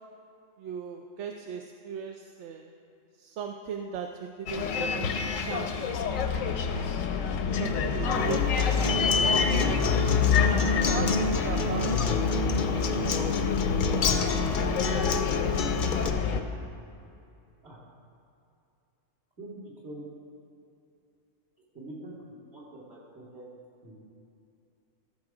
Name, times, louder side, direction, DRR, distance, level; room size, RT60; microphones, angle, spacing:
voice 1, 0.6-2.7 3.2-5.7 7.6-9.5 9.9-10.1 10.9-12.2 12.5-12.7 14.5-15.2, right 7 dB, 70° right, 4 dB, 0.8 m, -38 dB
Bus, 4.5-16.4, left 6 dB, 90° left, 1.1 m, -27 dB
voice 2, 7.3-7.6 17.6-17.8 19.4-19.6 19.8-20.0 21.7-23.5 23.8-23.9, right 1 dB, 50° right, -6 dB, 3.2 m, -44 dB
Acoustic guitar, 8.1-16.1, left 3 dB, 55° left, 0.6 m, -30 dB
14.5 x 6.3 x 4.8 m, 2.7 s
omnidirectional pair, 1.4 m